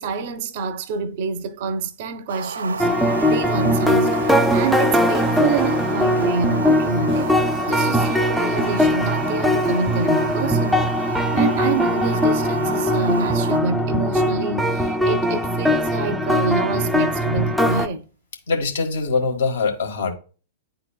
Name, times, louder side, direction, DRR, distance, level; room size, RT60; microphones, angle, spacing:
voice 1, 0.0-2.9 3.3-4.2 4.5-7.4 7.7-10.8 11.1-18.1, right 4 dB, 50° right, 0.8 m, -27 dB
sound 1, 2.3-13.6, right 5 dB, 70° right, 0.4 m, -32 dB
sound 2, 2.8-17.9, equal, ahead, 0.5 m, -20 dB
voice 2, 18.5-20.1, left 4 dB, 65° left, 1.6 m, -23 dB
10.5 x 4.0 x 2.3 m
figure-of-eight pair, 100°, 0 cm